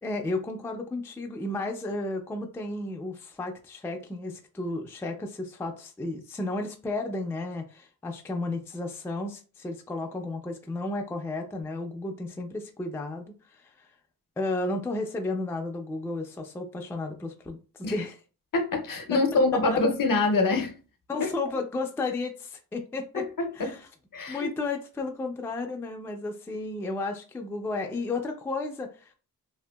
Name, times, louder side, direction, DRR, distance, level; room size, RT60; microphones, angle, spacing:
voice 1, 0.0-13.3 13.5-13.9 14.4-18.2 19.1-19.2 19.7-19.8 21.1-23.2 23.5-23.9 24.3-29.2, left 2 dB, 5° left, 0.3 m, -33 dB
voice 2, 18.5-20.8 21.2-21.3 23.1-23.8 24.1-24.5, left 3 dB, 55° left, 0.6 m, -25 dB
2.7 x 2.5 x 2.2 m
wide cardioid pair, 80°, 39 cm